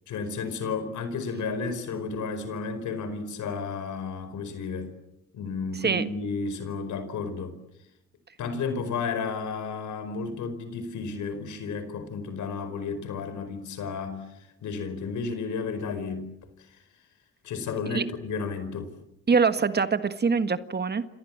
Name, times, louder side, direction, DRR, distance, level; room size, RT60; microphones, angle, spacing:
voice 1, 0.1-4.9 5.3-7.6 8.4-14.3 14.6-16.3 16.7-16.8 17.4-18.9, left 4 dB, 75° left, 11 dB, 4.9 m, -32 dB
voice 2, 19.3-21.1, right 5 dB, 35° right, 11 dB, 1.6 m, -24 dB
29.5 x 26.5 x 7.5 m, 0.84 s
cardioid pair, 90°, 30 cm